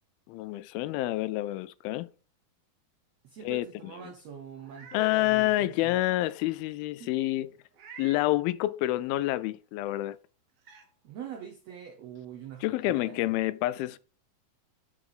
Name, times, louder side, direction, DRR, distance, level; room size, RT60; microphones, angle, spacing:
voice 1, 0.3-2.1 3.4-3.7 4.0-4.1 4.9-7.5 8.0-10.2 12.6-14.0, left 16 dB, 90° left, 2.4 m, -28 dB
voice 2, 3.2-6.0 7.0-7.1 11.0-13.3, right 7 dB, 80° right, 1.5 m, -44 dB
Meow, 4.5-5.1 5.6-5.7 7.7-8.3 9.9-10.0 10.6-10.9, right 7 dB, 60° right, 1.7 m, -49 dB
7.4 x 6.0 x 3.8 m
omnidirectional pair, 4.2 m